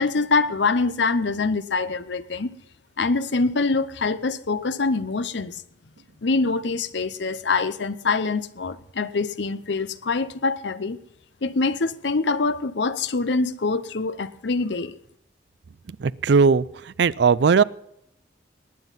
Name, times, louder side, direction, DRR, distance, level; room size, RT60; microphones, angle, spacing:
voice 1, 0.0-2.5 3.0-5.6 6.2-11.0 11.4-15.0, left 3 dB, 70° left, 0.7 m, -24 dB
voice 2, 16.0-17.6, right 5 dB, 65° right, 0.4 m, -18 dB
19.5 x 9.4 x 5.6 m
head